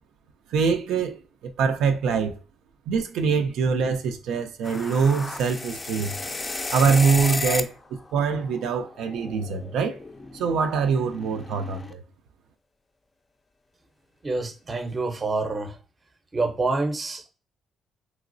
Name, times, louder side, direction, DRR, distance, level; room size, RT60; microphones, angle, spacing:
voice 1, 0.5-2.3 2.9-6.2 6.7-7.7 8.1-10.0 10.3-12.0, right 5 dB, 85° right, 0.4 m, -24 dB
sound 1, 4.6-7.8 8.1-11.9, left 3 dB, 25° left, 0.4 m, -34 dB
voice 2, 14.2-15.8 16.3-17.3, right 3 dB, 30° right, 0.6 m, -27 dB
3.0 x 2.9 x 2.5 m
cardioid pair, 90°, 0 cm